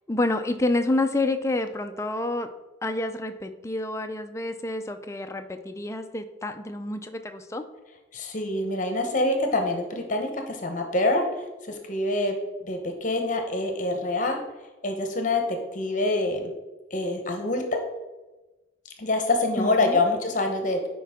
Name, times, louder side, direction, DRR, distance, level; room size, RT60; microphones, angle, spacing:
voice 1, 0.1-2.5 2.8-7.6 19.6-20.0, left 2 dB, 15° left, 7 dB, 0.4 m, -28 dB
voice 2, 8.1-12.4 12.6-14.4 14.8-16.5 16.9-17.8 19.0-20.8, left 2 dB, 40° left, 4 dB, 0.9 m, -26 dB
10.0 x 4.7 x 3.6 m, 1.1 s
head